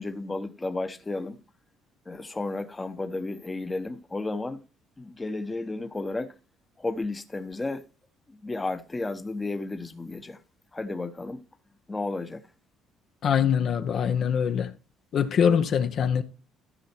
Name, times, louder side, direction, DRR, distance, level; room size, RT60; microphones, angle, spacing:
voice 1, 0.0-1.4 2.1-4.6 5.0-6.3 6.8-7.8 8.3-10.4 10.7-11.4 11.9-12.4, left 2 dB, 20° left, 1.0 m, -33 dB
voice 2, 13.2-14.7 15.1-16.2, left 7 dB, 55° left, 0.9 m, -23 dB
14.0 x 5.6 x 4.4 m
cardioid pair, 90°, 0 cm